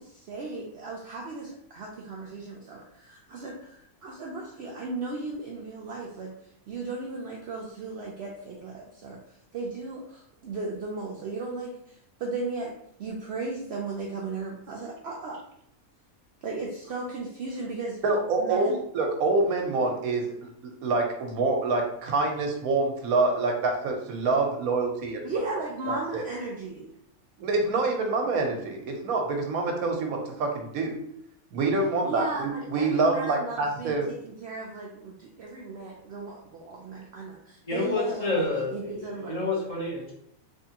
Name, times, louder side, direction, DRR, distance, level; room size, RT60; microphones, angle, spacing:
voice 1, 0.0-6.3 6.7-9.2 9.5-12.7 13.0-15.4 16.4-18.0 18.4-18.8 25.2-26.9 32.0-34.0 34.2-38.5 38.7-39.4, right 3 dB, 60° right, -2 dB, 0.7 m, -36 dB
voice 2, 18.0-26.2 27.4-30.9 31.5-34.1, right 3 dB, 90° right, 2 dB, 1.2 m, -26 dB
voice 3, 37.6-40.1, left 3 dB, 25° left, -6 dB, 1.1 m, -29 dB
3.4 x 3.1 x 2.8 m, 0.70 s
omnidirectional pair, 1.5 m